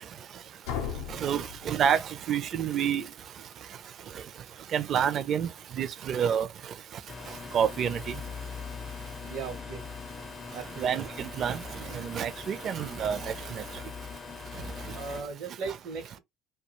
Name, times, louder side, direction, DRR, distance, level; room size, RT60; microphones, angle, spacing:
sound 1, 0.6-2.5, left 8 dB, 90° left, 0.6 m, -37 dB
voice 1, 1.1-3.1 4.1-4.2 4.7-6.5 7.5-8.2 10.8-13.6 14.9-15.0, right 8 dB, 50° right, 0.4 m, -29 dB
sound 2, 7.1-15.2, left 5 dB, 35° left, 0.4 m, -41 dB
voice 2, 9.2-9.8 10.5-11.1 14.9-16.2, right 5 dB, 75° right, 0.8 m, -38 dB
2.3 x 2.2 x 2.9 m
supercardioid pair, 85°, 0 cm